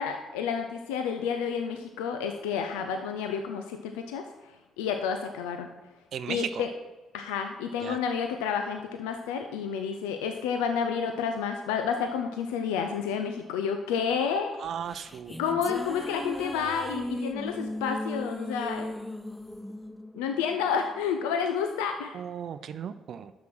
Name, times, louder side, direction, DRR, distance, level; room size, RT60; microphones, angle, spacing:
voice 1, 0.0-4.3 4.8-5.7 6.3-6.7 7.1-14.5 15.4-18.9 20.1-22.2, left 6 dB, 90° left, 5 dB, 0.5 m, -30 dB
voice 2, 6.1-6.7 7.8-8.0 14.6-15.4 22.1-23.3, right 8 dB, 60° right, 12 dB, 0.4 m, -36 dB
sound 1, 14.7-21.2, left 1 dB, 5° left, 0.4 m, -37 dB
6.2 x 6.0 x 6.0 m, 1.1 s
supercardioid pair, 60°, 0 cm